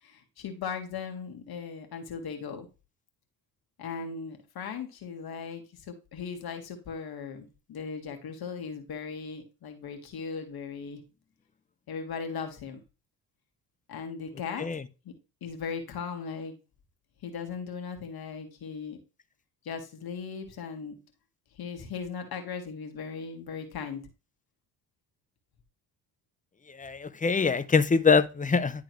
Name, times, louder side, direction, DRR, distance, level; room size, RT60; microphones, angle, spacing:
voice 1, 0.0-2.7 3.8-11.0 11.9-12.8 13.9-14.7 15.1-15.2 15.4-16.5 17.2-19.0 19.6-21.0 21.5-24.0, left 6 dB, 55° left, 1.9 m, -38 dB
voice 2, 26.8-28.7, left 5 dB, 20° left, 0.6 m, -23 dB
11.0 x 3.7 x 3.1 m
hypercardioid pair, 55°, 45 cm